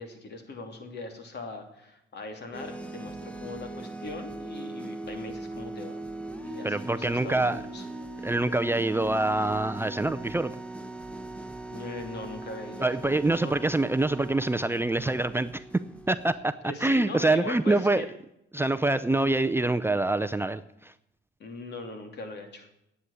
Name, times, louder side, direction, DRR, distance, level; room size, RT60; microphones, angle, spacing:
voice 1, 0.0-6.0 6.4-7.8 11.7-13.5 16.6-18.1 21.4-22.7, left 3 dB, 60° left, 5 dB, 3.0 m, -40 dB
sound 1, 2.5-16.4, right 2 dB, 5° left, 1.3 m, -40 dB
voice 2, 6.6-7.6 8.2-10.5 12.8-15.6 16.1-16.5 16.8-18.0 18.5-20.9, right 2 dB, 10° right, 10 dB, 0.6 m, -25 dB
10.5 x 8.4 x 9.9 m, 0.81 s
cardioid pair, 90°, 20 cm